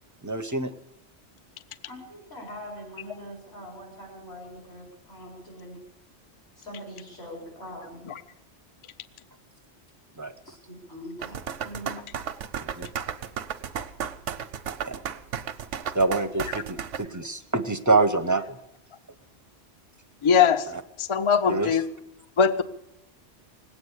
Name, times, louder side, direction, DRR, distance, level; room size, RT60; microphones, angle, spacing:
voice 1, 0.2-0.7 10.2-10.3 12.6-12.9 14.8-15.0 15.9-18.6 20.7-20.8 21.5-21.8, right 3 dB, 20° right, 8 dB, 0.6 m, -26 dB
voice 2, 1.9-5.8 6.6-8.0 10.4-12.1, equal, 65° left, -2 dB, 4.7 m, -42 dB
sound 1, 11.2-17.0, right 8 dB, 85° right, 1.1 m, -33 dB
voice 3, 20.2-20.7 21.0-21.9 22.4-22.6, left 7 dB, 40° left, 11 dB, 0.5 m, -20 dB
19.5 x 8.7 x 8.0 m, 0.84 s
omnidirectional pair, 1.2 m